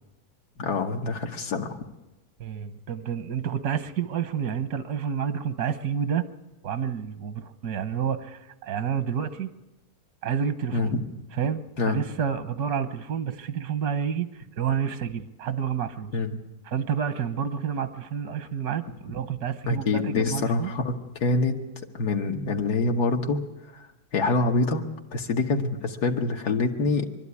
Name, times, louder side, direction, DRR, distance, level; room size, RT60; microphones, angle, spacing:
voice 1, 0.6-1.8 10.7-11.1 11.8-12.0 16.1-16.3 19.7-21.6 21.9-23.4 23.7-23.9 24.1-27.1, left 3 dB, 90° left, 2 dB, 1.9 m, -25 dB
voice 2, 2.4-6.3 6.6-9.5 10.2-11.0 11.4-16.2 16.6-20.7, right 8 dB, 85° right, 12 dB, 1.5 m, -29 dB
23.5 x 12.5 x 9.7 m, 0.97 s
omnidirectional pair, 1.6 m